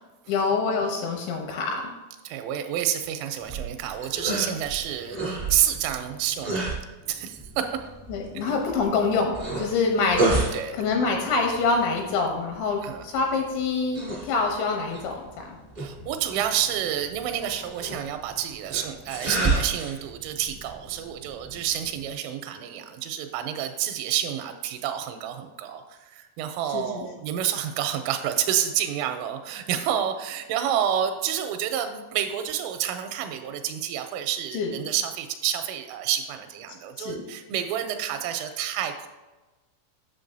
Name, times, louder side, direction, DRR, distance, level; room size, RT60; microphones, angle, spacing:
voice 1, 0.3-1.8 8.1-10.3 10.7-15.6 26.7-27.1 34.5-34.7 37.0-37.2, left 4 dB, 80° left, 2 dB, 2.8 m, -26 dB
voice 2, 2.2-6.8 7.1-7.7 8.4-8.5 10.5-10.8 12.8-13.0 15.8-39.1, right 10 dB, 85° right, 7 dB, 3.1 m, -29 dB
sound 1, 3.4-22.1, right 2 dB, 60° right, 0.6 m, -32 dB
8.4 x 6.7 x 2.6 m, 1.1 s
omnidirectional pair, 5.7 m